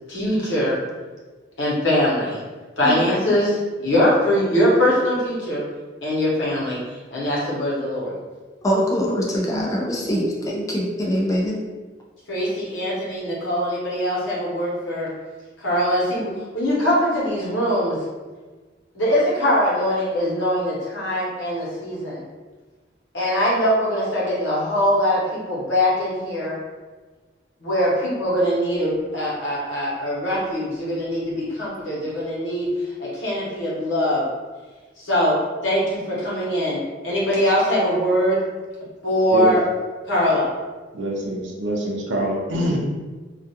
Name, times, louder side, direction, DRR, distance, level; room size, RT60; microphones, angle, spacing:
voice 1, 0.1-0.8 1.6-2.4 2.8-5.6 6.0-6.8 7.1-8.1 12.3-15.1 15.6-18.0 18.9-22.3 23.1-26.6 27.6-32.7 33.0-34.2 35.0-35.4 35.6-38.4 39.0-39.6 40.1-40.5, equal, 85° left, -6 dB, 0.9 m, -22 dB
voice 2, 2.8-3.3 8.6-11.6, equal, 20° left, -3 dB, 0.5 m, -23 dB
voice 3, 40.9-42.8, right 1 dB, 85° right, -1 dB, 0.6 m, -25 dB
2.4 x 2.2 x 2.8 m, 1.3 s
head